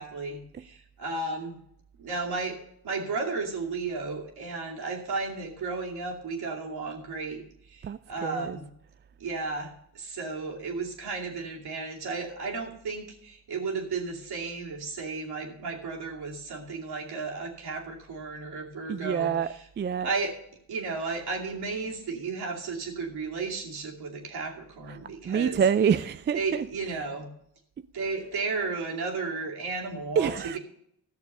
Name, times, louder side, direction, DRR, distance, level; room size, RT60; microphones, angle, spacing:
voice 1, 0.0-1.6 2.0-2.6 2.8-7.4 7.7-8.7 9.2-19.7 20.0-20.3 20.7-25.6 26.3-27.3 27.9-30.6, right 4 dB, 65° right, 2.6 m, -34 dB
voice 2, 7.8-8.6 18.9-20.1 24.9-25.0 25.2-26.6 30.2-30.6, right 7 dB, 30° right, 0.4 m, -27 dB
13.5 x 6.7 x 5.5 m
supercardioid pair, 60°, 42 cm